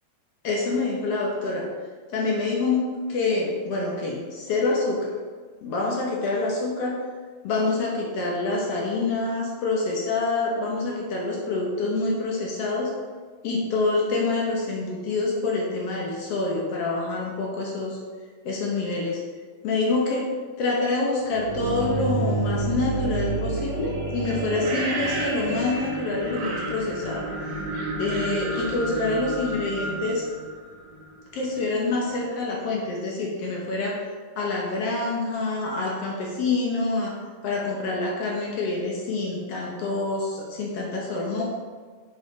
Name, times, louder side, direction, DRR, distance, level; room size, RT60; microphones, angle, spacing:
voice 1, 0.4-1.7 2.1-5.1 5.6-7.0 7.4-12.9 13.4-18.0 18.4-19.2 19.6-20.3 20.6-27.3 28.0-30.3 31.3-34.1 34.4-37.1 37.4-41.4, left 3 dB, 65° left, -2 dB, 1.6 m, -26 dB
sound 1, 21.3-31.1, right 2 dB, 75° right, 2.7 m, -29 dB
6.9 x 5.1 x 3.9 m, 1.5 s
omnidirectional pair, 3.8 m